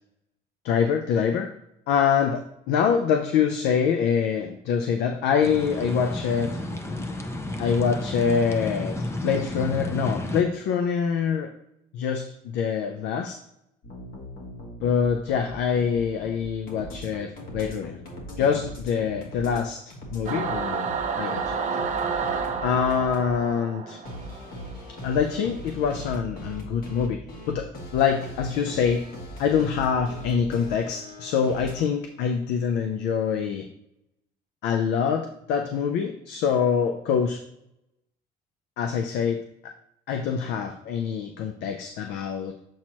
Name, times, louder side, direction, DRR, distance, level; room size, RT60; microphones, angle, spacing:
voice 1, 0.6-1.5 1.9-6.5 7.6-11.5 11.9-13.4 14.8-18.0 18.4-19.8 20.1-20.9 21.2-21.6 22.6-24.0 25.0-27.2 27.5-29.0 29.4-33.7 34.6-37.4 38.8-39.4 40.1-42.5, left 7 dB, 85° left, 6 dB, 0.5 m, -25 dB
sound 1, 5.4-10.4, left 1 dB, 15° left, 0.6 m, -32 dB
sound 2, 13.8-19.6 19.9-23.3 24.1-31.8, equal, 60° left, 1.6 m, -40 dB
Singing / Musical instrument, 20.3-24.9, right 5 dB, 45° right, 0.7 m, -30 dB
7.3 x 4.4 x 2.9 m, 0.81 s
cardioid pair, 110°, 17 cm